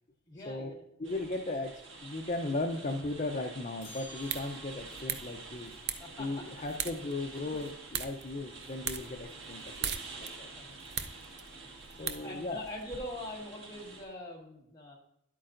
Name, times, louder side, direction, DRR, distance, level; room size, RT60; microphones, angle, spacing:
voice 1, 0.3-1.1 6.0-6.5 7.1-7.3 10.5-10.8 11.4-11.5 12.2-15.0, left 1 dB, 20° left, -3 dB, 1.7 m, -43 dB
voice 2, 1.0-5.7 6.2-10.5 12.0-12.6, left 2 dB, 40° left, 2 dB, 0.6 m, -37 dB
sound 1, 1.0-14.0, right 3 dB, 75° right, 1.5 m, -48 dB
sound 2, 3.8-5.2, left 4 dB, 65° left, 3.8 m, -52 dB
sound 3, 4.0-12.8, right 8 dB, 55° right, 0.5 m, -41 dB
10.5 x 8.5 x 2.5 m, 0.76 s
head